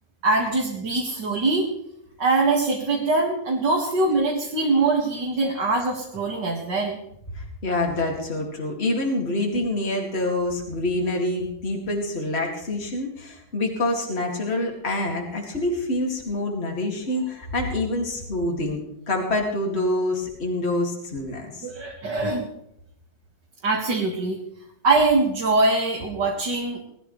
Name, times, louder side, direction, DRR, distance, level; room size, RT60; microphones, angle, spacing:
voice 1, 0.2-1.7 2.2-7.0 21.6-22.5 23.6-24.4 24.8-26.8, right 3 dB, 80° right, -3 dB, 2.8 m, -23 dB
voice 2, 7.3-18.8 19.1-21.7, left 1 dB, 35° left, 0 dB, 2.7 m, -26 dB
20.5 x 13.5 x 3.3 m, 0.78 s
omnidirectional pair, 1.9 m